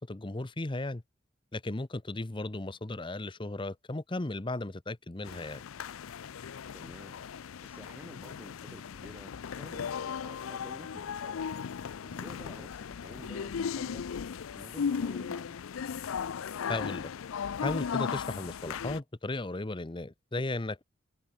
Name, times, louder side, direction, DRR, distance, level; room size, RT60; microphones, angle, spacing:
voice 1, 0.1-1.0 1.5-5.6 16.7-17.1 17.6-20.8, left 2 dB, 25° left, 0.8 m, -35 dB
sound 1, 5.2-19.0, left 6 dB, 80° left, 0.5 m, -37 dB
voice 2, 6.7-7.2 7.6-11.4 12.0-14.1 14.6-15.6, equal, 10° right, 3.6 m, -51 dB
head